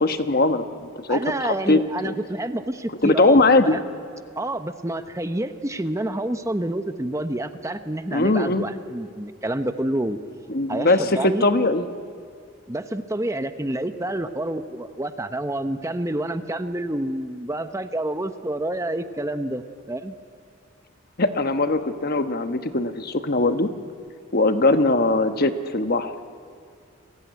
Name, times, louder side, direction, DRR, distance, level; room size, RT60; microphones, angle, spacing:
voice 1, 0.0-2.1 3.0-3.8 8.1-8.7 10.5-11.8 21.2-23.7 24.3-26.2, left 2 dB, 45° left, 9 dB, 1.2 m, -20 dB
voice 2, 1.1-3.8 4.4-10.2 10.7-11.5 12.7-20.1, right 1 dB, 15° right, 9 dB, 0.8 m, -28 dB
29.5 x 21.5 x 9.3 m, 2.3 s
head